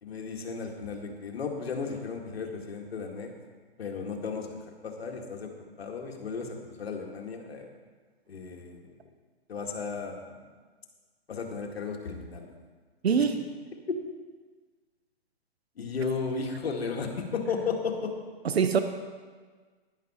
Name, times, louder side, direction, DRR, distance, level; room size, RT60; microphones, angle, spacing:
voice 1, 0.0-3.3 3.8-7.7 8.3-8.8 9.5-10.3 11.3-12.5 13.9-14.0 15.8-18.1, left 5 dB, 75° left, 2 dB, 2.1 m, -34 dB
voice 2, 13.0-13.4 18.5-18.8, right 6 dB, 80° right, 8 dB, 1.0 m, -23 dB
11.5 x 10.5 x 4.3 m, 1.5 s
hypercardioid pair, 135°, 31 cm